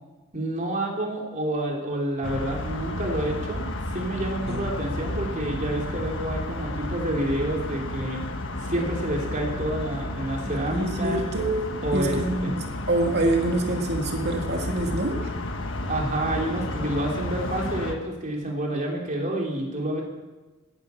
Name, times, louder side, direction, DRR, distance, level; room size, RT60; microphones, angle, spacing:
voice 1, 0.3-3.7 3.9-8.2 8.6-11.2 11.8-12.5 15.9-20.0, right 1 dB, 40° right, 0 dB, 3.4 m, -28 dB
sound 1, 2.2-18.0, left 1 dB, 65° left, 1.5 m, -32 dB
voice 2, 10.7-11.6 11.9-15.2, right 2 dB, 55° right, 2 dB, 2.3 m, -26 dB
17.0 x 10.5 x 7.1 m, 1.2 s
head